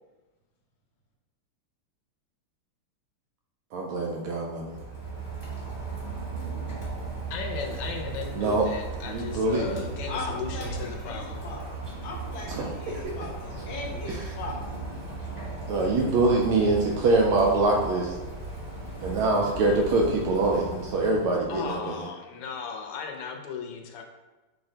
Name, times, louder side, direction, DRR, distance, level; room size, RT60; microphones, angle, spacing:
voice 1, 3.7-4.8 8.3-8.6 9.1-9.9 12.5-13.1 14.1-14.2 15.7-18.1 19.0-22.1, right 2 dB, 80° right, -1 dB, 1.4 m, -24 dB
Rain, 4.5-21.8, right 3 dB, 20° right, 0.7 m, -37 dB
voice 2, 7.3-11.4 21.5-24.0, left 6 dB, 90° left, 2 dB, 1.6 m, -36 dB
voice 3, 10.1-14.8, left 3 dB, 70° left, -1 dB, 1.5 m, -39 dB
5.8 x 2.1 x 3.7 m, 1.2 s
omnidirectional pair, 2.4 m